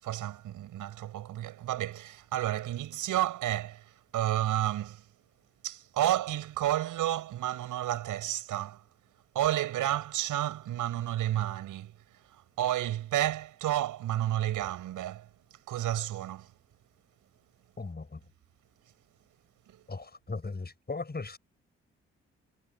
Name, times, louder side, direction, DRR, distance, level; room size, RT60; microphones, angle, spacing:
voice 1, 0.0-3.8 4.1-5.0 5.6-8.8 9.3-11.9 12.3-15.3 15.7-16.5 19.7-19.8, right 13 dB, 70° right, 5.9 m, -31 dB
voice 2, 17.8-18.2 19.9-21.4, left 3 dB, 30° left, 7.9 m, -38 dB
hypercardioid pair, 45°, 33 cm